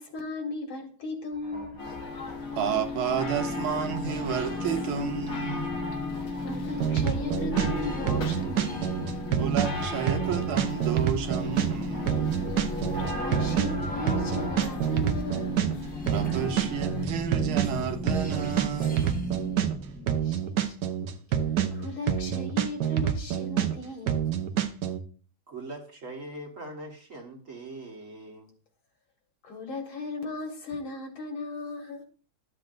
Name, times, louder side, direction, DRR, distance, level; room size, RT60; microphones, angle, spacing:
voice 1, 0.0-1.9 6.4-8.9 12.9-15.7 20.2-20.8 21.5-24.2 29.4-32.0, left 3 dB, 75° left, 2.4 m, -37 dB
sound 1, 1.3-20.2, equal, 10° left, 0.4 m, -36 dB
sound 2, 1.8-17.0, left 4 dB, 45° left, 1.4 m, -37 dB
voice 2, 2.6-5.7 9.4-12.4 16.1-19.0, right 8 dB, 80° right, 1.7 m, -31 dB
sound 3, 6.8-25.0, right 9 dB, 65° right, 1.1 m, -27 dB
voice 3, 25.5-28.5, right 2 dB, 40° right, 1.6 m, -41 dB
12.0 x 7.6 x 2.5 m
omnidirectional pair, 2.3 m